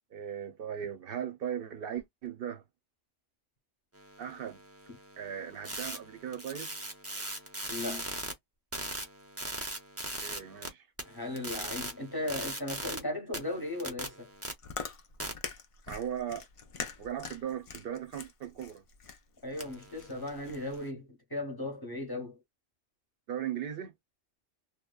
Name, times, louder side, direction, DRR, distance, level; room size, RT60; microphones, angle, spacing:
voice 1, 0.1-2.6 4.2-4.6 5.2-6.7 10.2-10.9 15.9-16.4 17.0-18.8 23.3-23.9, right 9 dB, 60° right, 0.7 m, -38 dB
sound 1, 4.0-8.3 8.7-10.7 11.0-13.0 13.3-14.5 15.2-15.3 19.6-20.9, right 1 dB, 20° right, 0.4 m, -40 dB
voice 2, 7.7-8.1 11.1-14.3 19.4-22.4, left 2 dB, 25° left, 0.7 m, -37 dB
Chewing mastication, 14.3-20.8, left 5 dB, 65° left, 0.3 m, -44 dB
2.9 x 2.1 x 2.2 m
omnidirectional pair, 1.2 m